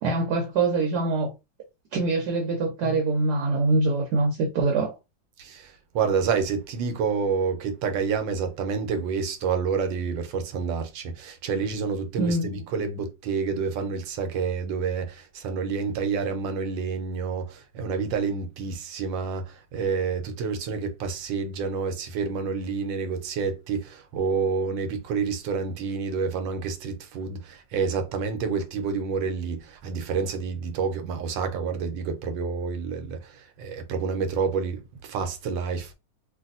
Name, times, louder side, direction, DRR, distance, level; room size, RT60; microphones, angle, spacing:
voice 1, 0.0-1.3 1.9-4.9 12.2-12.6, right 3 dB, 70° right, 1.1 m, -24 dB
voice 2, 5.4-35.9, right 5 dB, 85° right, 1.4 m, -28 dB
3.3 x 2.6 x 2.5 m
omnidirectional pair, 2.0 m